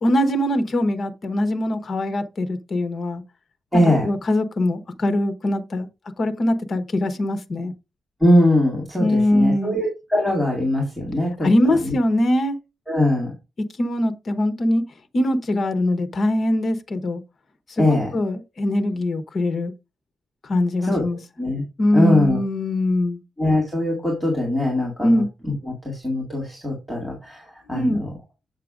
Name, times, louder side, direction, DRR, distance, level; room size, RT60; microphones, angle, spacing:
voice 1, 0.0-3.2 3.7-5.9 6.2-7.7 9.0-9.8 11.4-12.6 13.8-14.8 15.1-17.2 17.8-19.7 20.4-21.2 21.8-23.2 25.0-25.3 27.7-28.0, left 1 dB, 40° left, 1.0 m, -22 dB
voice 2, 3.7-4.1 8.2-11.5 11.8-11.9 12.9-13.3 17.8-18.1 20.8-21.0 21.4-21.6 21.9-22.4 23.4-25.2 25.7-28.1, left 1 dB, ahead, 2.0 m, -21 dB
7.9 x 6.6 x 2.5 m
wide cardioid pair, 180°, 0 cm